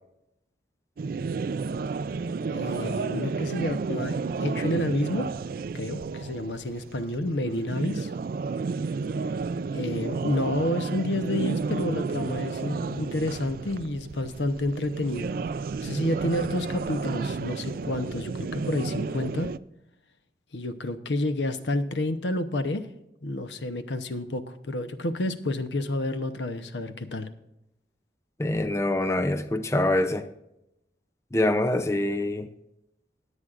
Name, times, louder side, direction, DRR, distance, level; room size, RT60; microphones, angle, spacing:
sound 1, 1.0-19.6, right 4 dB, 55° right, 0.3 m, -32 dB
voice 1, 2.5-5.3 5.7-8.1 9.7-15.3 15.8-19.5 20.5-22.9 23.2-27.3, left 1 dB, 90° left, 0.9 m, -29 dB
voice 2, 28.4-30.3 31.3-32.5, left 1 dB, 15° left, 0.5 m, -25 dB
20.5 x 8.2 x 2.5 m
head